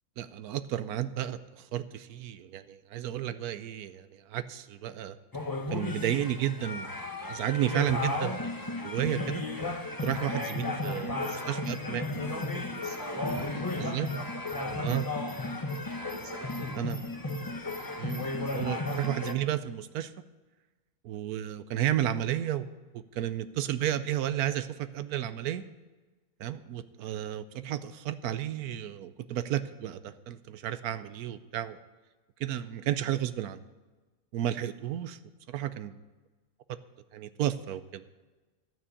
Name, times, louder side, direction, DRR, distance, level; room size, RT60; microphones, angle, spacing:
voice 1, 0.2-5.2 5.7-6.9 7.2-8.5 8.8-9.4 10.0-11.1 11.5-12.0 13.8-14.1 14.8-15.1 16.7-17.0 18.0-20.1 21.0-22.7 22.9-25.6 26.4-31.8 32.4-33.6 34.3-35.2 35.5-35.9 37.1-38.0, right 11 dB, 75° right, 13 dB, 1.1 m, -32 dB
sound 1, 5.3-19.3, left 2 dB, 20° left, 0.7 m, -34 dB
voice 2, 10.8-14.2 14.6-14.9 16.1-16.8, right 2 dB, 15° right, 4 dB, 0.7 m, -45 dB
14.0 x 6.2 x 8.2 m, 1.2 s
omnidirectional pair, 1.7 m